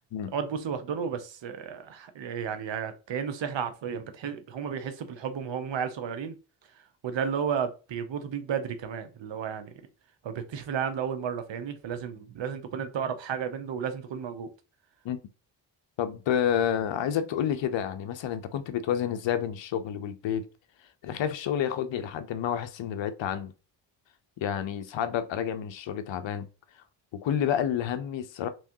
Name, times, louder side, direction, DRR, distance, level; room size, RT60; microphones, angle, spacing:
voice 1, 0.3-6.4 7.0-9.8 10.2-14.5, right 7 dB, 60° right, 0.9 m, -33 dB
voice 2, 16.0-20.5 21.0-23.5 24.4-26.5 27.1-28.5, left 9 dB, 65° left, 0.7 m, -29 dB
3.5 x 3.1 x 2.7 m
supercardioid pair, 55°, 49 cm